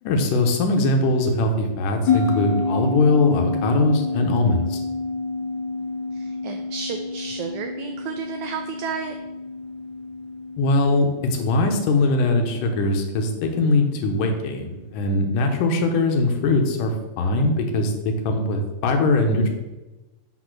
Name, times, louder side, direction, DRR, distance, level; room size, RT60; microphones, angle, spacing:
voice 1, 0.0-4.8 10.6-19.5, left 2 dB, 75° left, 4 dB, 2.5 m, -21 dB
sound 1, 2.1-14.8, left 4 dB, 45° left, 1.8 m, -29 dB
voice 2, 6.1-9.1, right 6 dB, 85° right, 5 dB, 1.6 m, -32 dB
5.9 x 4.2 x 6.0 m, 1.1 s
omnidirectional pair, 3.9 m